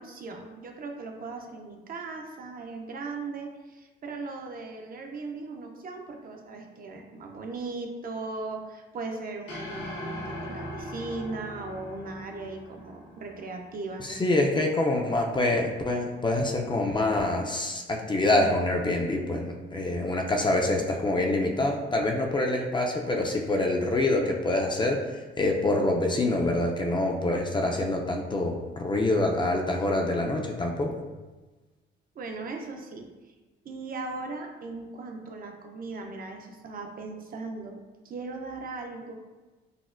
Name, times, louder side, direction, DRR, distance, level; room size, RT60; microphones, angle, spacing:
voice 1, 0.0-14.2 32.2-33.3 33.6-39.1, right 3 dB, 45° right, 3 dB, 0.5 m, -38 dB
sound 1, 9.5-13.9, left 1 dB, 70° left, 1.2 m, -40 dB
voice 2, 14.0-30.9, left 2 dB, 25° left, 1 dB, 0.4 m, -26 dB
4.1 x 2.1 x 2.4 m, 1.2 s
cardioid pair, 90°, 20 cm